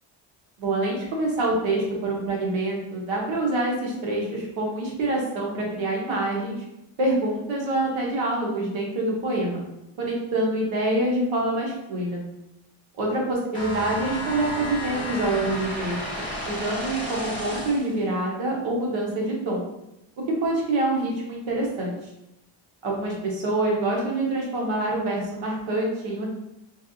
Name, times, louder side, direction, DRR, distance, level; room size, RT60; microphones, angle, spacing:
voice 1, 0.6-6.6 7.0-9.6 10.0-12.2 13.0-16.0 16.4-19.6 20.3-22.0 22.8-26.3, right 2 dB, 70° right, -2 dB, 1.0 m, -26 dB
sound 1, 13.5-18.0, equal, 10° left, 0.9 m, -32 dB
3.3 x 2.3 x 2.5 m, 0.87 s
cardioid pair, 165°, 48 cm